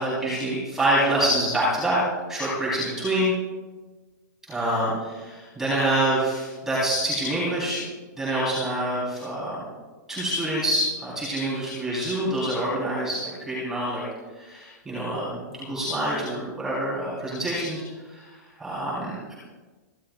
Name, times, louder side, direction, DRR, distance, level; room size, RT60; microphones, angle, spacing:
voice 1, 0.0-2.0 2.3-3.3 4.5-7.8 8.2-9.6 10.1-14.0 14.3-18.3 18.6-19.3, right 1 dB, 5° right, -9 dB, 3.7 m, -26 dB
27.0 x 12.0 x 2.4 m, 1.3 s
hypercardioid pair, 170°, 10 cm